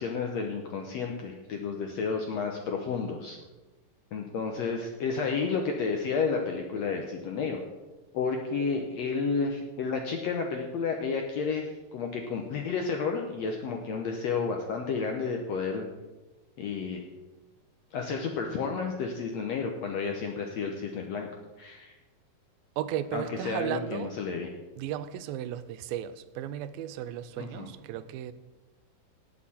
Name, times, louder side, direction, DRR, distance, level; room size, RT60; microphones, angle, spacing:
voice 1, 0.0-3.4 4.1-7.6 8.1-15.8 16.6-17.0 17.9-21.3 21.6-21.9 23.1-24.5 27.4-27.7, left 5 dB, 75° left, 1.6 m, -31 dB
voice 2, 22.8-24.1 24.8-28.3, right 11 dB, 90° right, 2.4 m, -35 dB
18.5 x 6.7 x 4.2 m
omnidirectional pair, 4.1 m